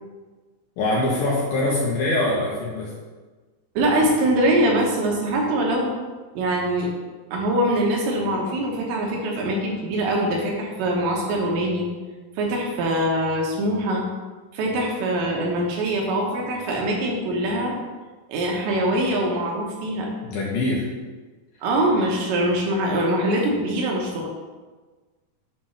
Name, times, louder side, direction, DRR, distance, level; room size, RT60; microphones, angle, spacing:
voice 1, 0.8-2.9 20.2-20.9, left 2 dB, 70° left, -4 dB, 2.4 m, -23 dB
voice 2, 3.8-5.9 6.4-6.9 7.3-11.9 12.4-14.0 14.5-17.8 18.3-20.1 21.6-24.3, right 1 dB, 75° right, -1 dB, 3.5 m, -23 dB
9.1 x 3.5 x 5.7 m, 1.3 s
omnidirectional pair, 5.2 m